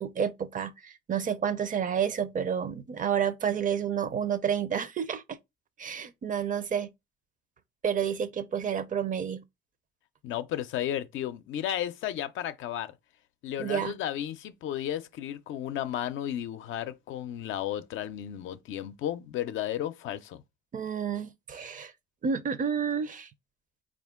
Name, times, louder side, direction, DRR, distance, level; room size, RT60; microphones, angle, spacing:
voice 1, 0.0-5.4 5.8-6.9 7.8-9.4 13.6-13.9 20.7-21.9 22.2-23.3, right 7 dB, 40° right, 0.5 m, -30 dB
voice 2, 10.2-12.9 13.4-20.4, left 11 dB, 80° left, 0.5 m, -33 dB
4.3 x 2.4 x 3.6 m
cardioid pair, 90°, 20 cm